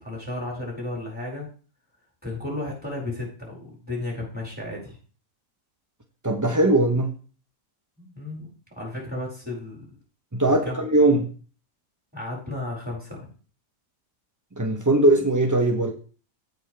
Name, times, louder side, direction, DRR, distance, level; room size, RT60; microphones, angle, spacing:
voice 1, 0.0-1.5 2.2-5.0 8.0-10.0 10.4-10.8 12.1-13.3, left 2 dB, 5° right, -3 dB, 5.0 m, -34 dB
voice 2, 6.2-7.1 10.3-11.3 14.6-15.9, right 2 dB, 20° right, 3 dB, 0.5 m, -20 dB
16.0 x 5.3 x 3.3 m, 0.38 s
omnidirectional pair, 1.9 m